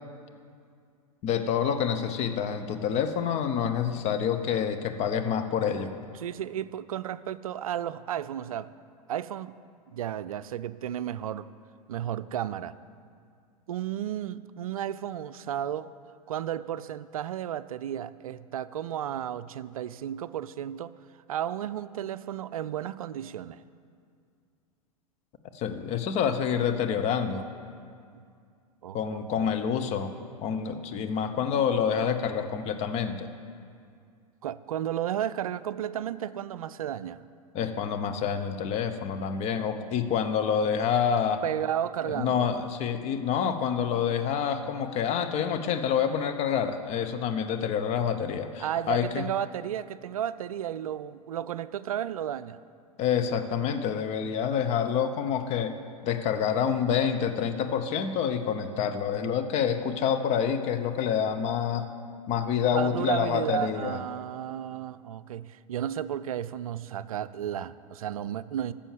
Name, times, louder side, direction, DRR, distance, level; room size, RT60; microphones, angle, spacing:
voice 1, 1.2-5.9 25.5-27.5 28.9-30.1 30.4-33.3 37.5-41.4 42.1-49.3 53.0-55.7 56.0-61.9 62.3-64.0, left 7 dB, 35° left, 8 dB, 0.9 m, -27 dB
voice 2, 6.2-8.7 9.1-9.5 9.9-11.5 11.9-12.7 13.7-15.9 16.3-20.9 21.3-23.6 28.8-29.6 34.4-37.2 41.4-42.5 48.6-52.6 62.7-68.7, right 10 dB, 65° right, 15 dB, 0.4 m, -33 dB
12.5 x 7.0 x 7.3 m, 2.3 s
figure-of-eight pair, 95°, 19 cm